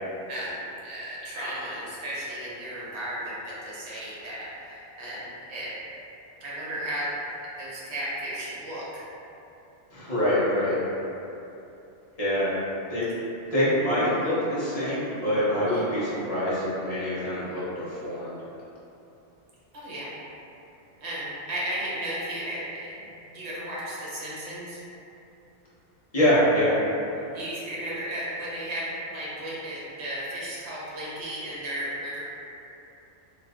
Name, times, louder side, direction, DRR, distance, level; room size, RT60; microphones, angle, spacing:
voice 1, 0.8-5.7 6.4-7.1 7.6-9.0 15.6-15.8 19.7-20.1 21.0-22.9 23.3-24.8 27.3-32.2, right 1 dB, 70° right, -8 dB, 1.1 m, -34 dB
voice 2, 9.9-10.8 12.2-12.5 12.9-13.1 13.5-18.4 26.1-26.8, equal, 35° left, -10 dB, 0.9 m, -25 dB
3.2 x 2.7 x 2.3 m, 2.9 s
omnidirectional pair, 1.2 m